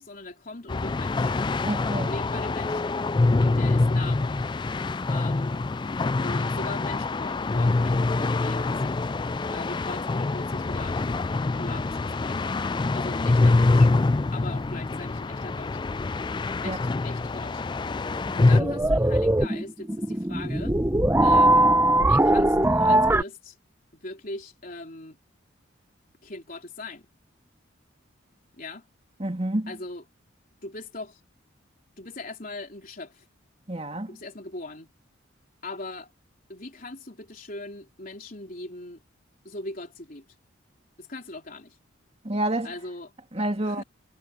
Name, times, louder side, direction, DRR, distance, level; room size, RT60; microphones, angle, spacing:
voice 1, 0.0-1.3 1.9-3.0 3.4-4.4 5.1-5.6 6.2-9.1 9.5-12.6 12.9-13.9 14.3-15.8 16.6-17.6 18.3-20.8 21.2-21.7 22.0-23.6 23.9-25.2 26.2-27.1 28.6-28.9 29.7-30.0 30.6-31.2 32.0-33.3 34.1-34.9 35.6-36.1 36.5-39.0 39.4-40.2 41.0-41.8 42.6-43.1 43.6-43.8, left 2 dB, 40° left, 3.8 m, -40 dB
sound 1, 0.7-18.6, left 3 dB, 20° left, 0.3 m, -25 dB
voice 2, 1.6-2.1 16.6-16.8 29.2-29.7 33.7-34.1 42.2-42.7 43.3-43.8, right 1 dB, 30° right, 2.7 m, -28 dB
sound 2, 18.2-23.2, right 1 dB, 10° right, 0.7 m, -20 dB
head